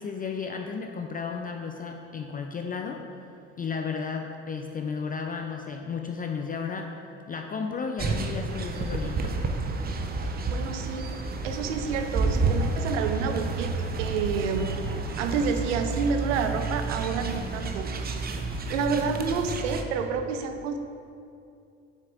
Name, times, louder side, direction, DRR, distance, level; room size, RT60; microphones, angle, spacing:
voice 1, 0.0-3.0 3.6-6.9 7.3-9.4, left 5 dB, 25° left, 3 dB, 0.4 m, -33 dB
sound 1, 8.0-19.8, right 3 dB, 25° right, 0.6 m, -30 dB
voice 2, 10.2-11.1 11.4-13.7 14.0-14.7 15.2-18.3 18.7-20.8, right 5 dB, 80° right, 7 dB, 0.6 m, -29 dB
7.2 x 6.4 x 2.4 m, 2.5 s
hypercardioid pair, 65°, 36 cm